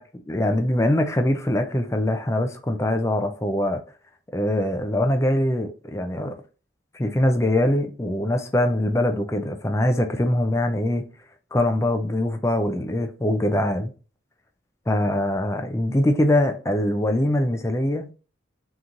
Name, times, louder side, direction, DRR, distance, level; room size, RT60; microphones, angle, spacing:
voice 1, 0.3-3.8 4.3-6.3 6.9-11.0 11.5-13.9 14.9-18.1, left 1 dB, 15° left, 0.4 m, -23 dB
3.9 x 3.0 x 3.7 m
head